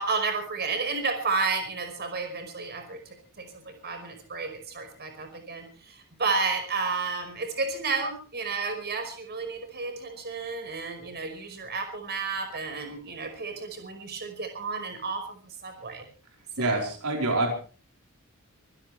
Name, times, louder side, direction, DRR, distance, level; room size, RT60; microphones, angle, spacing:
voice 1, 0.0-3.0 3.4-16.1 16.6-16.9, right 4 dB, 50° right, 6 dB, 5.3 m, -32 dB
voice 2, 16.6-17.5, right 2 dB, 80° right, 1 dB, 4.5 m, -26 dB
25.0 x 16.0 x 3.4 m, 0.38 s
head